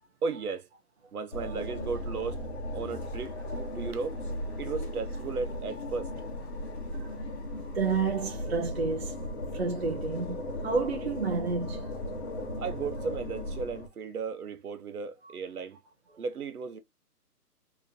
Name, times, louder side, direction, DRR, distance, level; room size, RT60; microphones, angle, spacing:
voice 1, 0.2-0.7 1.1-2.4 2.7-3.4 3.7-4.2 4.6-6.1 12.6-15.8 16.2-16.8, right 5 dB, 70° right, 0.8 m, -35 dB
sound 1, 1.3-13.9, left 1 dB, 45° left, 1.0 m, -37 dB
voice 2, 7.5-9.2 9.5-11.9, right 4 dB, 45° right, 0.5 m, -30 dB
3.7 x 2.9 x 2.6 m
hypercardioid pair, 175°, 47 cm